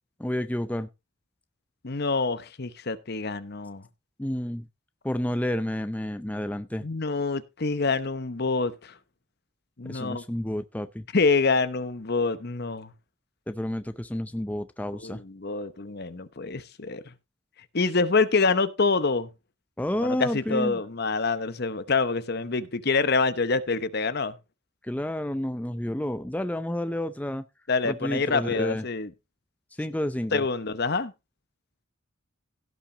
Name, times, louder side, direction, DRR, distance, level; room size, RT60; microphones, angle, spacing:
voice 1, 0.2-0.9 4.2-4.7 5.0-6.9 9.8-11.1 13.5-15.2 19.8-20.8 24.8-27.5 27.8-28.8 29.8-30.5, left 1 dB, 5° left, 0.5 m, -30 dB
voice 2, 1.8-3.8 6.8-8.9 9.8-10.2 11.1-12.9 14.9-17.0 17.7-19.3 20.0-24.4 27.7-29.1 30.3-31.1, left 4 dB, 50° left, 0.9 m, -26 dB
16.5 x 5.8 x 4.0 m
head